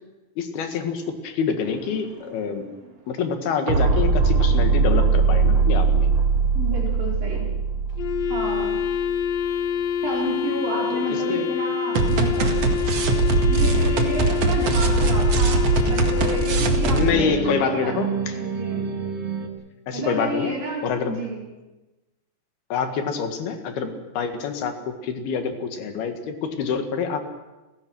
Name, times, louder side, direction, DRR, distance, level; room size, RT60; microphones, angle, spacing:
voice 1, 0.4-2.7 3.1-6.1 10.9-11.5 16.9-18.4 18.7-18.9 19.9-20.6 20.8-21.2 22.7-27.3, left 6 dB, 85° left, 7 dB, 3.8 m, -26 dB
sound 1, 1.7-2.0 3.7-9.5 12.0-19.5, right 4 dB, 50° right, 2.5 m, -21 dB
voice 2, 6.5-7.5 8.3-8.8 10.0-12.6 13.4-18.0 18.3-19.0 19.9-21.4, right 2 dB, 65° right, -2 dB, 6.5 m, -30 dB
Wind instrument woodwind instrument, 8.0-17.2, left 8 dB, 70° left, 1.7 m, -27 dB
29.0 x 16.0 x 6.3 m, 1.1 s
omnidirectional pair, 4.3 m